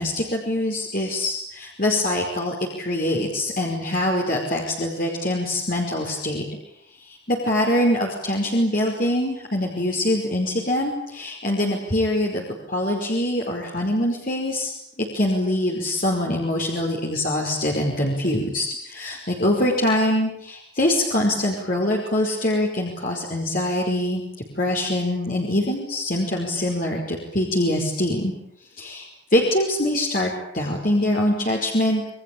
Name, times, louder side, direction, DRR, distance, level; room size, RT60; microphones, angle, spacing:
voice 1, 0.0-6.4 7.0-14.7 15.0-24.2 24.6-28.3 28.8-32.0, left 1 dB, 45° left, -1 dB, 5.2 m, -24 dB
29.0 x 23.5 x 8.7 m, 0.74 s
head